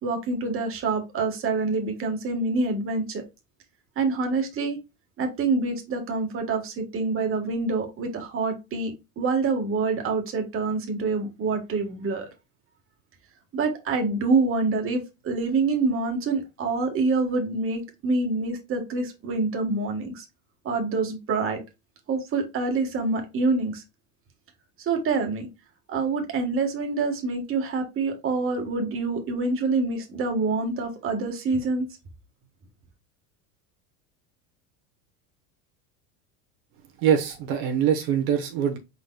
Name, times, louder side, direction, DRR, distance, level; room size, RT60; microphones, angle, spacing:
voice 1, 0.0-3.2 4.0-4.8 5.2-12.3 13.5-20.2 20.6-21.6 22.1-23.8 24.8-25.5 25.9-31.9, right 3 dB, 30° right, 1.3 m, -26 dB
voice 2, 37.0-38.8, right 8 dB, 75° right, 1.1 m, -23 dB
4.7 x 4.2 x 2.2 m
supercardioid pair, 115°, 41 cm